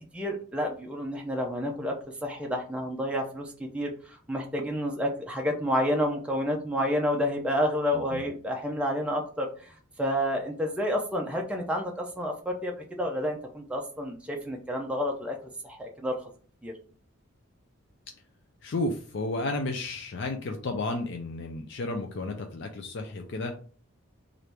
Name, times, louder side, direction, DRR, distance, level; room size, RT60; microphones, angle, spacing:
voice 1, 0.1-1.9 2.2-15.4 15.6-16.2 16.6-16.7, equal, 5° right, 0 dB, 0.5 m, -30 dB
voice 2, 7.9-8.2 18.6-23.5, left 2 dB, 55° left, 4 dB, 0.4 m, -32 dB
3.3 x 2.5 x 4.3 m, 0.42 s
head